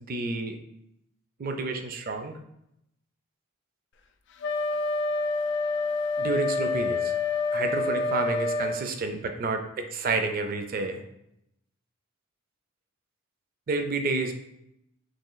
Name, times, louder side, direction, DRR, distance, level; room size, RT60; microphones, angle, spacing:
voice 1, 0.1-0.6 1.4-2.4 6.2-7.1 7.5-11.0 13.7-14.3, right 3 dB, 40° right, 6 dB, 0.4 m, -29 dB
Wind instrument woodwind instrument, 4.4-8.8, left 3 dB, 55° left, 0.4 m, -27 dB
6.3 x 3.0 x 2.2 m, 0.81 s
head